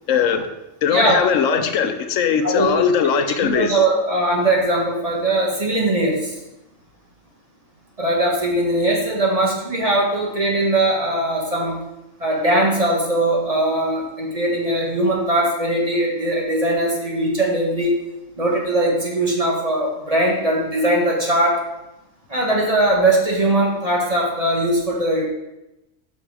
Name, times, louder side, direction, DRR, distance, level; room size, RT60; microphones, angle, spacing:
voice 1, 0.1-0.5 0.8-3.8, left 7 dB, 85° left, 8 dB, 1.0 m, -19 dB
voice 2, 0.9-1.2 2.4-2.8 3.4-6.4 8.0-11.8 12.2-17.9 18.4-21.6 22.3-25.2, right 1 dB, 30° right, -2 dB, 1.5 m, -20 dB
6.0 x 5.4 x 4.9 m, 0.93 s
omnidirectional pair, 1.3 m